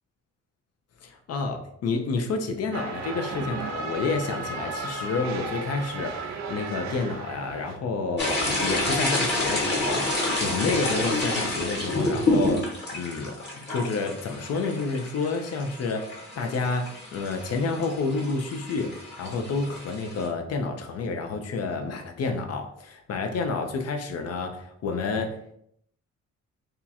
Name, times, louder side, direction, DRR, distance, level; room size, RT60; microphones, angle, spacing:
voice 1, 1.0-25.6, left 4 dB, 55° left, 5 dB, 0.7 m, -29 dB
sound 1, 2.7-7.7, right 3 dB, 65° right, 0.6 m, -34 dB
sound 2, 8.2-20.3, left 1 dB, 35° left, 1.4 m, -29 dB
2.8 x 2.4 x 4.1 m, 0.71 s
cardioid pair, 90°, 30 cm